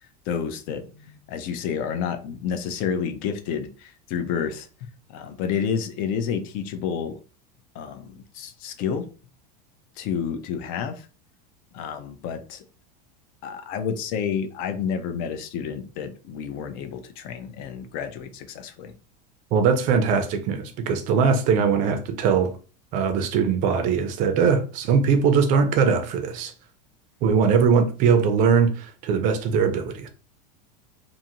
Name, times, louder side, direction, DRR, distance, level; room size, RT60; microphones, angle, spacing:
voice 1, 0.0-7.2 7.7-9.1 10.0-11.1 11.7-12.6 13.4-19.0, left 7 dB, 40° left, 0.5 m, -30 dB
voice 2, 19.5-22.5 22.9-26.5 27.2-30.1, right 6 dB, 40° right, 0.5 m, -21 dB
2.6 x 2.6 x 2.8 m
supercardioid pair, 150°, 21 cm